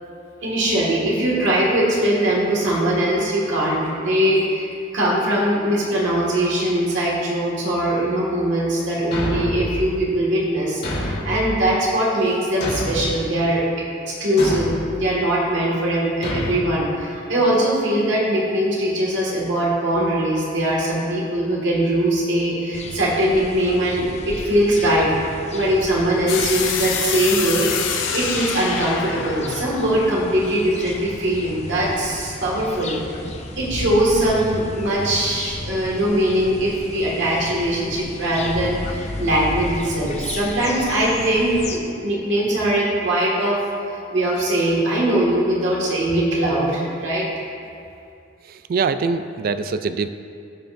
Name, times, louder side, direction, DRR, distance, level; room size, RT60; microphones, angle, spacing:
voice 1, 0.4-13.6 14.0-25.1 25.5-33.0 33.6-43.6 44.1-47.3, right 1 dB, 70° right, -5 dB, 1.9 m, -21 dB
Thump thud, 9.1-9.7 10.8-11.4 12.6-13.2 14.4-14.8 16.2-16.6, left 1 dB, 60° left, 2.0 m, -26 dB
sound 1, 22.7-41.8, left 2 dB, 35° left, 0.6 m, -34 dB
sound 2, 26.3-31.1, left 6 dB, 85° left, 0.8 m, -26 dB
voice 2, 48.5-50.1, right 4 dB, 50° right, 11 dB, 0.3 m, -23 dB
16.0 x 5.6 x 2.6 m, 2.4 s
head